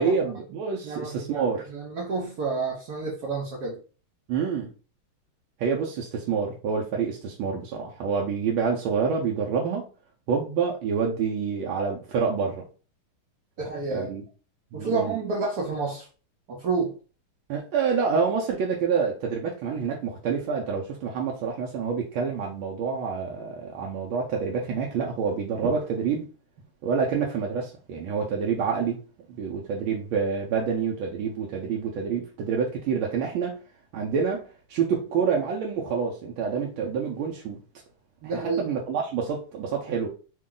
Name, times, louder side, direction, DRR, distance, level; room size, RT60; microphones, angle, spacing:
voice 1, 0.0-1.6 4.3-4.7 5.6-9.8 10.3-12.6 13.9-14.2 14.7-15.2 17.5-26.2 26.8-29.0 29.3-33.6 33.9-34.4 34.7-37.6 38.2-40.1, right 6 dB, 80° right, 0 dB, 1.4 m, -27 dB
voice 2, 0.8-3.8 13.6-14.1 14.7-16.1 16.5-16.9 25.6-25.7 38.2-38.6, right 4 dB, 65° right, -2 dB, 1.0 m, -29 dB
3.5 x 2.3 x 3.7 m, 0.37 s
omnidirectional pair, 2.3 m